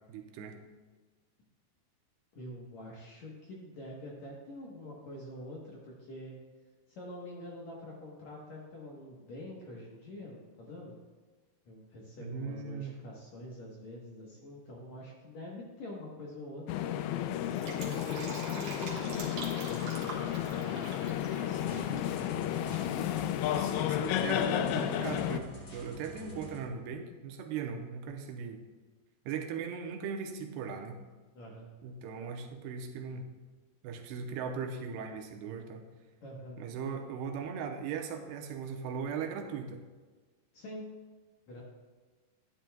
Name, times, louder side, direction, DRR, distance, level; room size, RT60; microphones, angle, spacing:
voice 1, 0.1-0.6 12.2-13.0 23.6-28.6 29.3-31.0 31.8-33.3 33.8-35.8 36.6-39.8, right 6 dB, 85° right, 4 dB, 2.9 m, -38 dB
voice 2, 2.3-6.4 6.9-11.0 11.7-16.9 17.5-22.8 31.3-31.7 36.2-36.6 40.5-40.8 41.5-41.6, left 1 dB, 65° left, -3 dB, 1.9 m, -46 dB
sound 1, 16.7-25.4, left 11 dB, 80° left, 2.3 m, -32 dB
Fill (with liquid), 17.4-22.2 22.4-22.5, right 3 dB, 60° right, 2.5 m, -44 dB
sound 2, 21.5-26.6, equal, 30° left, 2.3 m, -47 dB
12.5 x 10.5 x 2.3 m, 1.3 s
omnidirectional pair, 4.7 m